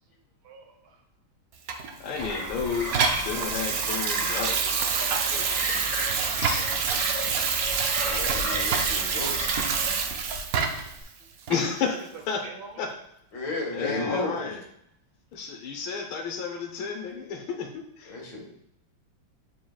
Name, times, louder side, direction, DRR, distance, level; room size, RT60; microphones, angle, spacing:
voice 1, 0.4-1.0 5.5-7.1 12.0-12.1 12.4-12.8, right 4 dB, 85° right, 4 dB, 1.7 m, -47 dB
Water tap faucet / Sink (filling or washing), 1.7-11.0 11.5-11.6, right 6 dB, 70° right, 0.8 m, -27 dB
voice 2, 2.0-5.1 5.3-5.5 11.5-12.5 12.8-12.9 13.7-14.6 15.3-18.2, left 5 dB, 85° left, 2 dB, 1.8 m, -32 dB
sound 1, 2.1-11.0, left 2 dB, 30° left, 1.0 m, -44 dB
sound 2, 2.1-10.0, equal, 5° left, 1.7 m, -34 dB
voice 3, 8.0-9.6 13.3-14.6 18.1-18.5, left 2 dB, 65° left, 0 dB, 2.0 m, -33 dB
9.2 x 4.5 x 2.3 m, 0.74 s
omnidirectional pair, 2.1 m